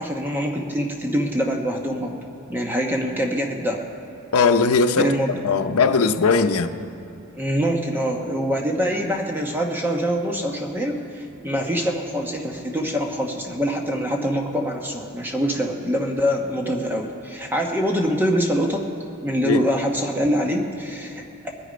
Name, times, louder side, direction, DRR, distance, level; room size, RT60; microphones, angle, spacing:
voice 1, 0.0-2.2 2.5-3.8 5.0-5.4 7.3-18.8 19.2-21.5, equal, 10° right, 1 dB, 1.0 m, -24 dB
voice 2, 4.3-5.1 5.4-6.7 19.4-19.6, left 4 dB, 85° left, 7 dB, 0.7 m, -18 dB
21.5 x 9.8 x 5.2 m, 2.8 s
head